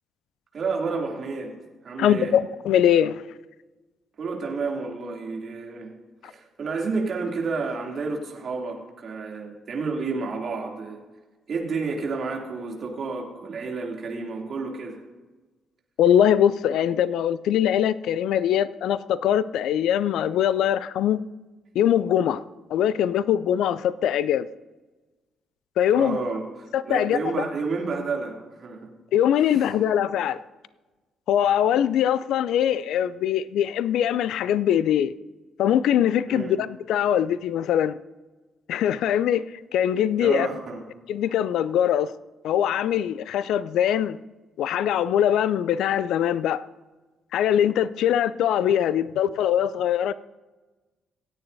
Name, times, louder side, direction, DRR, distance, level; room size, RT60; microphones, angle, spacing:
voice 1, 0.5-1.5 1.8-2.3 4.2-5.9 6.2-11.0 11.5-15.0 25.9-28.9 29.6-29.7 36.3-36.5 40.2-40.8, right 4 dB, 50° right, 0 dB, 2.9 m, -30 dB
voice 2, 2.0-3.2 16.0-21.2 21.7-22.4 22.7-24.5 25.8-26.2 26.7-27.2 29.1-30.4 31.3-35.1 35.6-37.9 38.7-39.4 39.7-40.5 41.1-42.1 42.4-44.2 44.6-46.6 47.3-50.1, left 10 dB, 65° left, 17 dB, 0.4 m, -22 dB
27.0 x 9.4 x 2.8 m, 1.2 s
hypercardioid pair, 45°, 0 cm